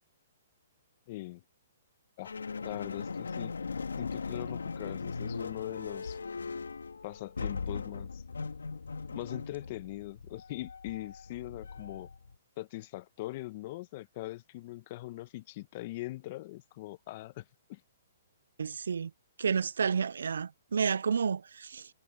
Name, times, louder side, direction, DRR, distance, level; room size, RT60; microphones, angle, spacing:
voice 1, 1.1-1.4 2.2-2.3 2.6-3.5 4.0-6.2 7.0-8.2 9.1-12.1 12.6-17.8, left 18 dB, 45° left, 1.1 m, -41 dB
sound 1, 2.3-12.4, left 4 dB, 90° left, 1.9 m, -39 dB
voice 2, 18.6-19.1 19.4-21.9, right 6 dB, 75° right, 0.3 m, -30 dB
hypercardioid pair, 135°, 0 cm